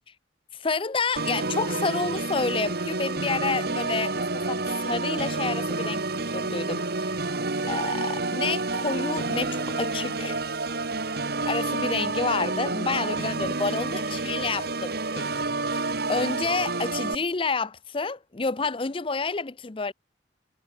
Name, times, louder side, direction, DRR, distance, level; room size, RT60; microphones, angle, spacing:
voice 1, 0.5-6.0 6.3-7.4 7.7-10.4 11.4-15.3 15.7-19.9, left 4 dB, 30° left, 0.6 m, -29 dB
Organ, 1.2-17.2, right 3 dB, 55° right, 1.7 m, -29 dB
head